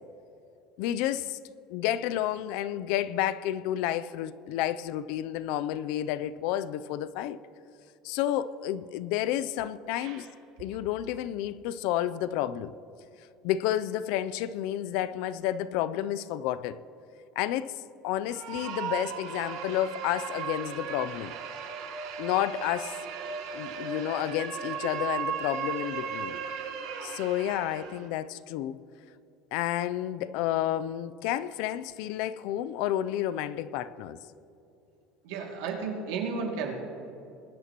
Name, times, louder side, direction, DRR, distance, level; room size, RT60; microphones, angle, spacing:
voice 1, 0.8-1.4 1.7-7.4 8.0-10.3 10.6-12.7 13.4-16.8 17.4-21.3 22.2-23.0 23.5-26.4 27.0-28.8 29.5-34.2, left 12 dB, 60° left, 0.4 m, -30 dB
sound 1, 18.2-28.1, right 6 dB, 60° right, 1.4 m, -36 dB
voice 2, 35.2-36.7, right 5 dB, 75° right, 2.3 m, -33 dB
21.5 x 11.0 x 3.0 m
cardioid pair, 170°, 0 cm